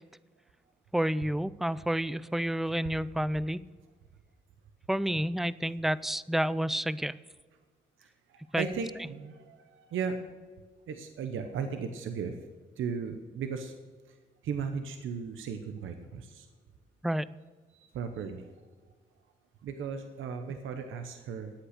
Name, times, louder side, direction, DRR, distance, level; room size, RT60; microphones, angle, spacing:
voice 1, 0.9-3.6 4.9-7.1 8.5-8.6 17.0-17.3, right 1 dB, ahead, 18 dB, 0.4 m, -29 dB
voice 2, 8.0-10.2 10.9-12.3 12.8-13.7 14.1-14.2 14.4-16.5 17.7-18.5 19.6-21.5, right 6 dB, 85° right, 6 dB, 0.9 m, -36 dB
13.0 x 8.8 x 6.6 m, 1.5 s
cardioid pair, 75°, 20 cm